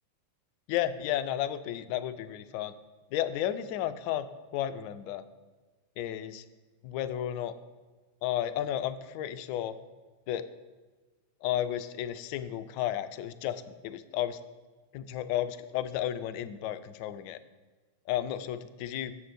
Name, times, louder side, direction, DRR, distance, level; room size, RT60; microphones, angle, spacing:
voice 1, 0.7-2.7 3.1-5.2 6.0-6.4 6.8-7.5 8.2-9.7 10.3-10.4 11.4-14.4 14.9-17.4 18.1-19.1, left 11 dB, 45° left, 11 dB, 0.4 m, -33 dB
7.2 x 4.1 x 6.4 m, 1.3 s
figure-of-eight pair, 90°, 0 cm